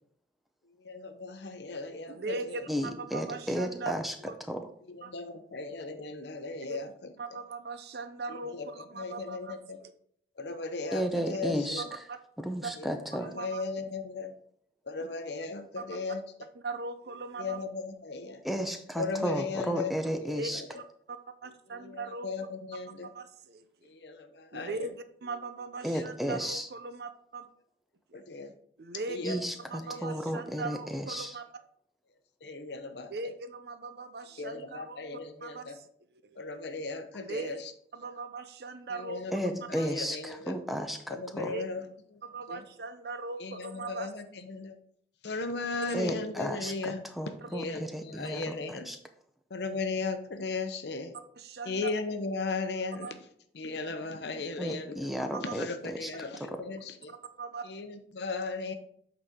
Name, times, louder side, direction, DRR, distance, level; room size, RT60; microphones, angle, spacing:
voice 1, 0.8-2.7 4.9-7.4 8.3-8.7 8.9-9.8 10.4-11.8 12.8-14.3 14.8-16.2 17.4-18.4 19.0-20.7 21.7-23.1 23.8-24.9 25.9-26.0 28.1-28.5 29.0-29.4 29.8-30.3 32.4-33.1 34.4-35.8 36.4-37.7 38.9-40.6 41.1-41.8 42.1-42.2 42.5-42.6 43.4-44.8 45.2-47.0 47.5-48.9 49.5-51.2 51.7-53.1 53.5-55.1 55.4-57.1 57.6-58.7, left 3 dB, 65° left, 8 dB, 0.7 m, -37 dB
voice 2, 2.1-3.9 4.2-4.3 5.0-5.1 6.7-6.8 7.2-9.5 9.8-9.9 11.8-12.0 12.6-12.7 13.3-13.6 15.8-15.9 16.6-17.6 20.4-20.8 21.1-21.2 21.4-22.3 23.1-23.9 24.5-27.5 28.1-28.2 28.8-29.3 29.7-31.4 33.1-35.0 35.4-35.8 36.2-36.4 37.2-37.6 37.9-39.2 39.8-39.9 41.5-41.6 42.2-44.1 47.4-47.6 51.4-51.9 53.0-53.1 55.3-55.5 57.4-57.6, right 3 dB, 55° right, 10 dB, 0.5 m, -39 dB
voice 3, 2.7-4.1 4.5-4.7 10.9-11.8 12.4-13.3 18.4-20.6 25.8-26.7 29.2-31.4 39.3-41.5 45.9-49.0 54.6-56.1 56.4-56.5, equal, ahead, 6 dB, 0.5 m, -33 dB
8.2 x 4.0 x 3.6 m, 0.65 s
head